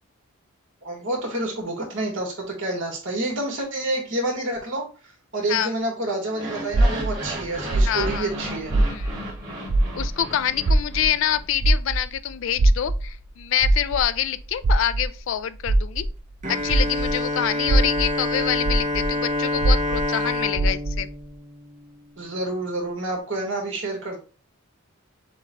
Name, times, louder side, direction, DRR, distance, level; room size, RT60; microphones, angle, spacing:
voice 1, 0.8-4.8 5.3-8.7 22.2-24.2, right 2 dB, 60° right, 1.7 m, -28 dB
sound 1, 6.3-11.4, right 1 dB, 20° right, 1.7 m, -35 dB
sound 2, 6.7-9.4 9.6-17.2 17.6-21.1, right 1 dB, 75° right, 0.5 m, -22 dB
voice 2, 7.8-8.3 8.9-9.1 9.9-16.1 16.5-21.1, left 10 dB, 65° left, 0.3 m, -26 dB
Bowed string instrument, 16.4-22.3, left 2 dB, 35° right, 0.8 m, -27 dB
6.9 x 2.3 x 3.1 m
head